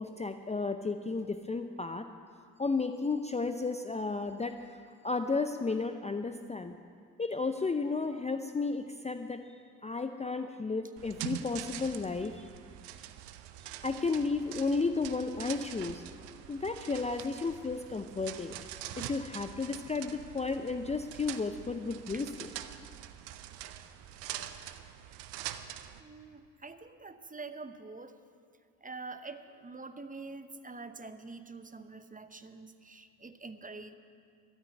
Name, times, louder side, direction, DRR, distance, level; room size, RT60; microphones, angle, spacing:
voice 1, 0.0-2.1 2.6-4.8 5.0-6.8 7.2-9.4 9.8-12.5 13.8-16.0 16.5-18.5 19.0-22.3, left 4 dB, 15° left, 8 dB, 0.6 m, -33 dB
sound 1, 11.0-26.0, right 12 dB, 70° right, 0.7 m, -44 dB
voice 2, 26.0-28.2 28.8-33.9, right 3 dB, 20° right, 10 dB, 0.9 m, -46 dB
13.0 x 9.0 x 9.0 m, 2.2 s
hypercardioid pair, 40°, 43 cm